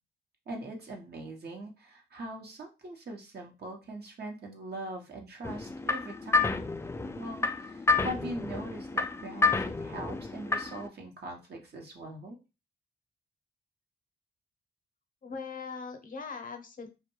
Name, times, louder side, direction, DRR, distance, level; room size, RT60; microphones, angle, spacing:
voice 1, 0.5-6.6 7.2-12.4, right 1 dB, 55° right, 1 dB, 0.8 m, -41 dB
sound 1, 5.4-10.9, left 3 dB, 15° left, 0.3 m, -30 dB
voice 2, 15.2-16.9, left 5 dB, 45° left, 6 dB, 0.7 m, -40 dB
2.2 x 2.1 x 3.0 m, 0.28 s
supercardioid pair, 50°, 20 cm